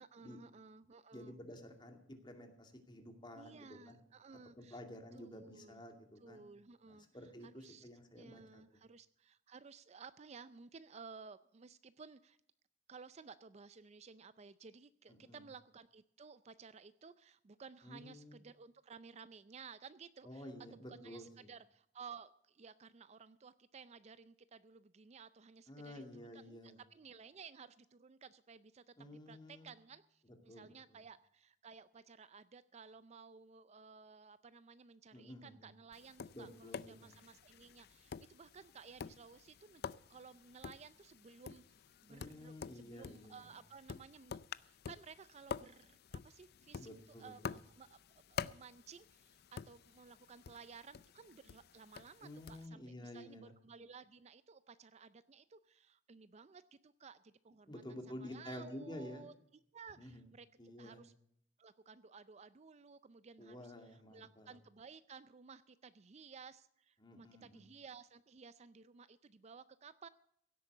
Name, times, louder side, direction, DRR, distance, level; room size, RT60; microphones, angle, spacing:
voice 1, 0.0-1.3 3.3-4.8 5.1-5.8 6.2-7.9 8.1-12.4 12.9-44.4 44.6-48.0 48.3-59.3 59.7-60.5 60.8-61.1 61.6-70.1, right 5 dB, 35° right, 14 dB, 0.4 m, -56 dB
voice 2, 1.1-4.0 4.6-6.4 6.9-8.6 15.1-15.4 17.8-18.4 20.2-21.5 25.7-26.8 29.0-29.7 30.5-31.0 35.1-35.7 36.3-37.1 42.1-43.4 46.8-47.6 52.2-53.5 57.7-59.3 60.0-60.2 60.6-61.0 63.4-64.6 67.0-67.6, left 1 dB, 25° left, 4 dB, 2.4 m, -51 dB
Tap, 35.9-52.7, left 6 dB, 55° left, 0.4 m, -49 dB
16.5 x 8.4 x 6.7 m, 0.69 s
head